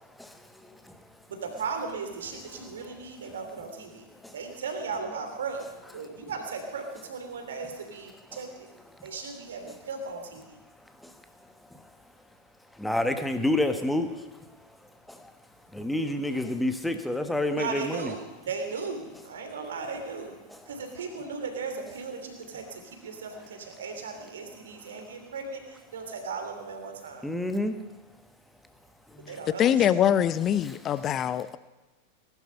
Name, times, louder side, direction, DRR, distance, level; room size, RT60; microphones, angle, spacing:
voice 1, 0.2-0.9 4.2-4.3 11.0-11.1 12.8-14.2 15.1-15.3 15.7-18.1 27.2-27.8 29.1-29.3 30.6-30.7, left 1 dB, 5° left, 8 dB, 1.3 m, -29 dB
voice 2, 1.3-4.1 4.3-5.6 5.9-8.7 9.0-10.6 17.5-20.4 20.7-27.3 29.3-29.9, right 4 dB, 65° right, 5 dB, 3.0 m, -37 dB
voice 3, 29.6-31.6, left 10 dB, 30° left, 16 dB, 0.6 m, -23 dB
19.0 x 12.0 x 5.6 m, 1.1 s
figure-of-eight pair, 90°, 0 cm